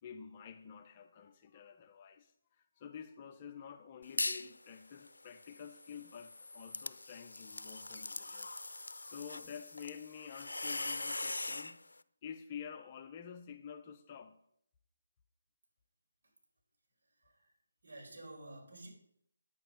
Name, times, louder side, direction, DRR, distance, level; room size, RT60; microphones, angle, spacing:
voice 1, 0.0-11.8 12.2-14.4, left 7 dB, 25° left, 0.7 m, -49 dB
sound 1, 4.0-4.5 4.9-11.7, left 2 dB, 80° left, 0.5 m, -41 dB
voice 2, 17.0-17.6 17.8-18.9, right 2 dB, 60° right, 4.6 m, -52 dB
9.1 x 8.4 x 5.1 m
figure-of-eight pair, 160°, 0 cm